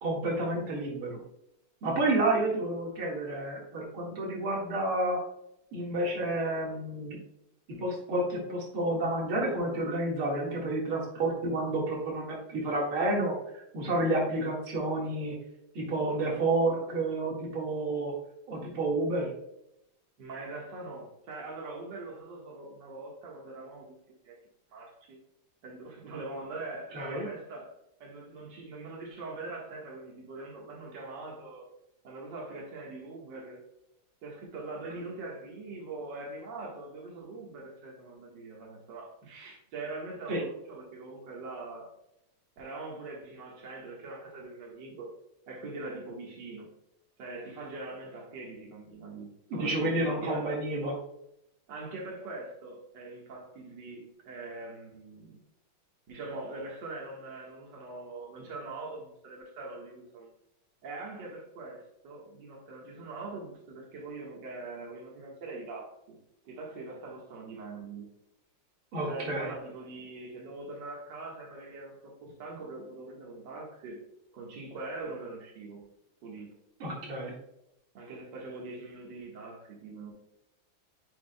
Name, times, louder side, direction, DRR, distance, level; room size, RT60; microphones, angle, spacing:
voice 1, 0.0-1.2 1.8-5.2 5.7-7.2 7.7-15.4 15.7-18.1 18.5-19.3 26.9-27.3 40.3-40.4 49.5-51.0 68.9-69.5 76.8-77.3, right 2 dB, 80° right, -2 dB, 2.6 m, -30 dB
voice 2, 20.2-23.9 24.2-24.4 24.7-25.2 25.6-27.7 28.0-31.7 32.0-33.6 34.2-41.9 42.6-45.2 45.5-46.7 47.2-50.5 51.7-55.4 56.1-60.3 60.8-66.2 66.5-68.1 69.1-74.0 74.3-75.8 76.2-76.5 77.9-80.1, right 3 dB, 60° right, -2 dB, 2.1 m, -42 dB
9.4 x 5.9 x 2.2 m, 0.81 s
omnidirectional pair, 2.3 m